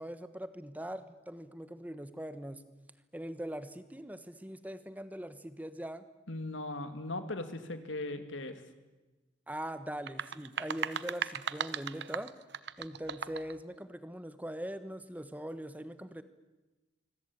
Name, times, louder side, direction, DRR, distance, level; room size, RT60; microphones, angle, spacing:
voice 1, 0.0-2.6 3.1-6.0 9.5-12.3 12.8-16.2, right 1 dB, 10° right, 12 dB, 1.2 m, -41 dB
voice 2, 6.3-8.6, left 2 dB, 80° left, 8 dB, 2.7 m, -38 dB
sound 1, 9.9-13.6, right 6 dB, 60° right, 0.9 m, -37 dB
25.5 x 23.0 x 8.8 m, 1.1 s
head